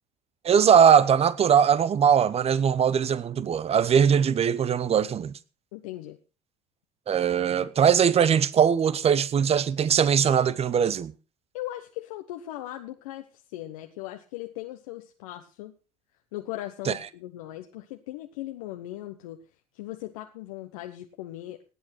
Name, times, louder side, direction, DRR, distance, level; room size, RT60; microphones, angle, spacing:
voice 1, 0.4-5.3 7.1-11.1 16.8-17.0, right 8 dB, 35° right, 1.0 m, -21 dB
voice 2, 5.7-6.2 11.5-15.7 16.3-19.4 19.7-21.6, left 15 dB, 75° left, 1.1 m, -38 dB
18.0 x 8.6 x 4.5 m
hypercardioid pair, 70°, 18 cm